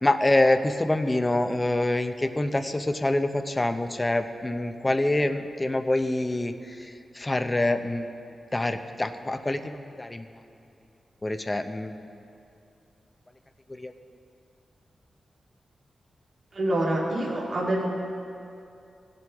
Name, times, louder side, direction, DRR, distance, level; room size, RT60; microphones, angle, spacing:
voice 1, 0.0-8.1 8.5-10.2 11.2-12.0 13.8-13.9, left 1 dB, 25° left, 8 dB, 0.7 m, -26 dB
voice 2, 16.5-17.9, right 1 dB, 60° right, -3 dB, 2.0 m, -26 dB
17.0 x 7.7 x 3.6 m, 2.6 s
cardioid pair, 60°, 0 cm